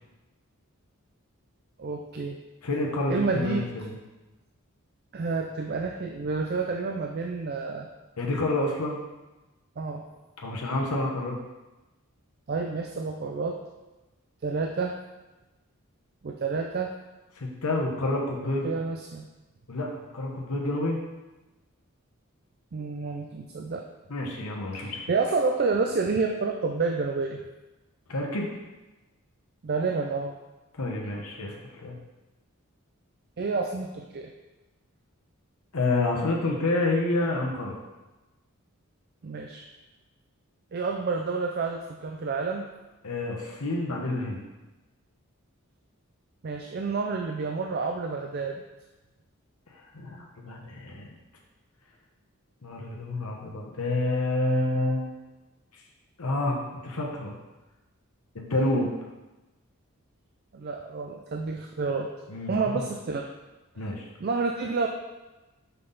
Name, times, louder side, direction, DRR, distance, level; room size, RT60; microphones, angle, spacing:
voice 1, 1.8-2.4 3.1-3.6 5.1-7.9 9.8-10.1 12.5-13.6 14.4-15.0 16.2-16.9 18.6-19.2 22.7-23.8 24.7-27.4 29.6-30.3 33.4-34.3 39.2-39.6 40.7-42.6 46.4-48.6 60.5-62.1 62.5-63.3 64.2-64.9, right 4 dB, 45° right, 3 dB, 0.4 m, -29 dB
voice 2, 2.6-4.0 8.2-9.0 10.4-11.4 17.3-18.7 19.7-21.0 24.1-25.1 28.1-28.5 30.8-32.0 35.7-37.8 43.0-44.4 49.8-51.1 52.6-55.1 55.7-55.8 56.2-57.3 58.3-58.9 62.3-62.8 63.8-64.1, left 2 dB, 90° left, -1 dB, 1.0 m, -28 dB
5.6 x 5.5 x 4.0 m, 1.1 s
head